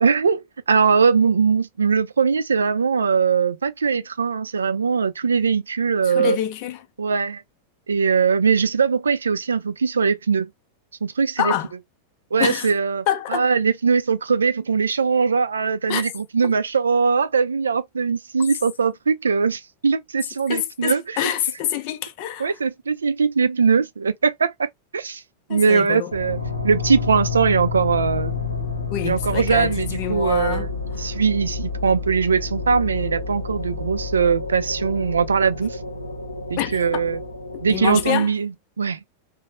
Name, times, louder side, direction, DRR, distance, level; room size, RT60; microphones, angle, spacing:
voice 1, 0.0-6.4 7.0-7.4 7.9-10.5 11.0-11.5 12.3-21.2 22.4-25.2 25.5-26.4 26.6-28.4 29.0-35.8 36.5-37.2 37.6-39.0, right 5 dB, 70° right, 0.4 m, -21 dB
voice 2, 6.1-6.9 11.4-11.7 12.4-12.7 13.1-13.5 15.9-16.0 16.4-16.5 20.5-22.5 25.5-26.1 28.9-30.7 36.6-37.0 37.5-38.3, left 11 dB, 45° left, 0.5 m, -26 dB
sound 1, 26.1-38.1, left 4 dB, 80° left, 0.8 m, -29 dB
3.0 x 2.1 x 2.9 m
figure-of-eight pair, 90°, 0 cm